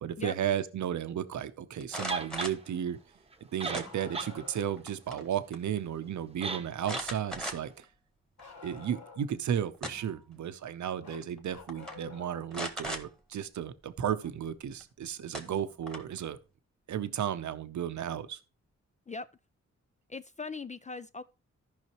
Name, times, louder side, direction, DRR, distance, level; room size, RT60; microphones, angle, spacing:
voice 1, 0.0-3.0 3.5-7.7 8.6-16.4 16.9-18.4, right 9 dB, 75° right, 0.7 m, -34 dB
sound 1, 1.8-2.7 3.7-4.3 4.7-5.3 5.5-5.6 6.8-7.8 8.4-8.5 9.5-10.2 11.2-11.4 11.7-12.0 12.5-13.0 14.8-14.9 15.3-16.2, equal, ahead, 1.6 m, -38 dB
sound 2, 2.1-2.5 3.3-3.4 3.6-4.3 4.7-4.8 6.4-6.7 6.9-7.1, right 3 dB, 20° right, 0.9 m, -35 dB
Bark, 3.7-4.8 8.4-9.4 11.0-12.5 14.2-14.3 16.2-16.3 17.4-17.5, left 4 dB, 65° left, 2.9 m, -50 dB
voice 2, 20.1-21.2, left 4 dB, 25° left, 0.4 m, -40 dB
14.0 x 5.6 x 3.0 m
cardioid pair, 75°, 30 cm